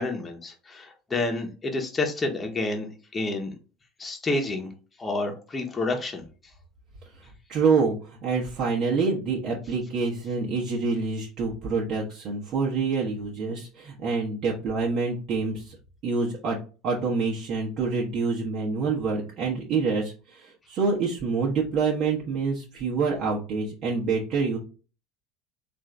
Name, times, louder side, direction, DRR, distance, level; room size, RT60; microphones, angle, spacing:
voice 1, 0.0-3.6 4.0-4.7 5.0-6.3, left 2 dB, 20° left, 1 dB, 1.1 m, -29 dB
voice 2, 7.5-15.7 16.0-16.6 16.8-24.6, right 4 dB, 50° right, -4 dB, 1.1 m, -26 dB
3.6 x 2.7 x 3.4 m, 0.36 s
hypercardioid pair, 75°, 0 cm